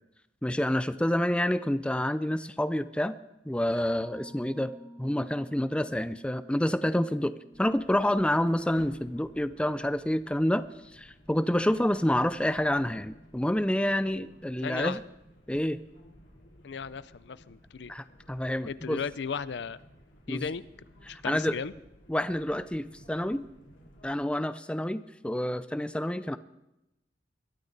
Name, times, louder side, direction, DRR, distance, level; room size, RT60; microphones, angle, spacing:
voice 1, 0.4-3.1 3.5-4.7 5.0-10.6 10.9-15.0 15.5-15.8 17.9-19.0 20.3-20.5 21.1-21.6 22.1-23.4 24.0-26.4, left 1 dB, 5° left, 13 dB, 0.4 m, -28 dB
Mallet percussion, 3.7-10.8, equal, 40° right, 3.7 m, -52 dB
sound 1, 7.5-24.2, equal, 85° left, 3.3 m, -56 dB
voice 2, 14.6-15.0 16.6-17.9 18.7-19.8 20.3-20.6 21.1-21.7, left 5 dB, 65° left, 16 dB, 0.5 m, -35 dB
21.5 x 13.0 x 4.0 m, 0.90 s
head